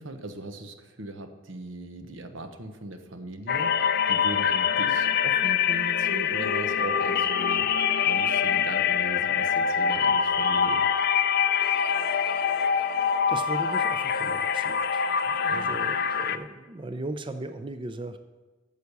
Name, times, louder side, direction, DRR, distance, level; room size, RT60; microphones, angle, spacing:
voice 1, 0.0-7.7 8.1-10.9 15.5-15.8, right 1 dB, 85° right, 7 dB, 1.0 m, -38 dB
sound 1, 3.5-16.4, left 7 dB, 55° left, 0.5 m, -24 dB
voice 2, 12.0-12.9 13.3-18.2, right 2 dB, 25° right, 9 dB, 0.4 m, -38 dB
9.3 x 7.0 x 6.7 m, 1.2 s
head